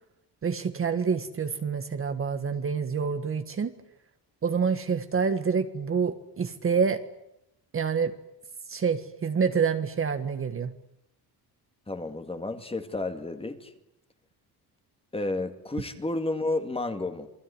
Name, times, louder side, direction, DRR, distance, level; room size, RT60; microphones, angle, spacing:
voice 1, 0.4-3.7 4.4-7.0 7.7-8.1 8.7-10.7, right 6 dB, 35° right, 9 dB, 1.5 m, -27 dB
voice 2, 11.9-13.7 15.1-17.3, left 2 dB, 15° left, 8 dB, 2.2 m, -31 dB
28.0 x 20.5 x 9.9 m, 0.82 s
cardioid pair, 145°, 39 cm